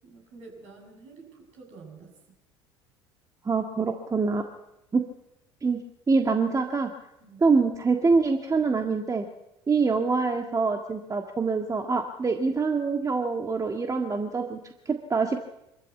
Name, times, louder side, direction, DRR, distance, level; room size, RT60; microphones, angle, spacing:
voice 1, 0.0-2.1 5.6-5.7 7.2-7.4, right 4 dB, 55° right, 2 dB, 7.5 m, -48 dB
voice 2, 3.5-4.4 4.9-5.0 5.6-5.8 6.1-6.9 7.4-9.3 9.7-14.6 14.9-15.4, right 4 dB, 25° right, 5 dB, 1.7 m, -25 dB
24.5 x 14.0 x 8.5 m, 0.88 s
figure-of-eight pair, 65°, 14 cm